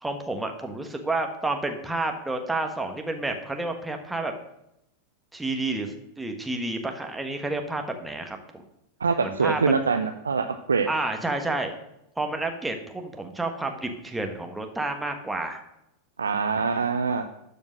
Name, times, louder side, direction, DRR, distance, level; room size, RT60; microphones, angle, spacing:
voice 1, 0.0-4.3 5.3-8.4 9.2-9.9 10.9-11.7 12.2-15.6, right 2 dB, 5° right, 4 dB, 1.3 m, -30 dB
voice 2, 9.0-10.9 16.2-17.2, right 5 dB, 80° right, 6 dB, 0.6 m, -24 dB
12.5 x 5.2 x 6.3 m, 0.84 s
figure-of-eight pair, 90°, 0 cm